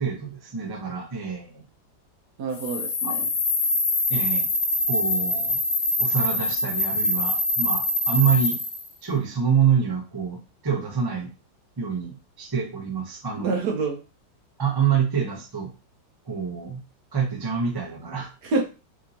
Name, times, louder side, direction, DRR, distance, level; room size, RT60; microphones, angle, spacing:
voice 1, 0.0-1.6 3.0-3.1 4.1-4.5 4.9-5.6 6.0-8.6 9.0-11.3 11.8-13.5 14.6-15.7 16.3-16.8 17.1-18.3, right 7 dB, 20° right, 0 dB, 0.6 m, -26 dB
voice 2, 2.4-3.3 13.4-14.0 18.4-18.6, right 3 dB, 65° right, 3 dB, 1.3 m, -27 dB
sound 1, 2.5-8.9, left 1 dB, 80° left, 1.6 m, -24 dB
5.9 x 2.9 x 2.9 m, 0.31 s
omnidirectional pair, 2.1 m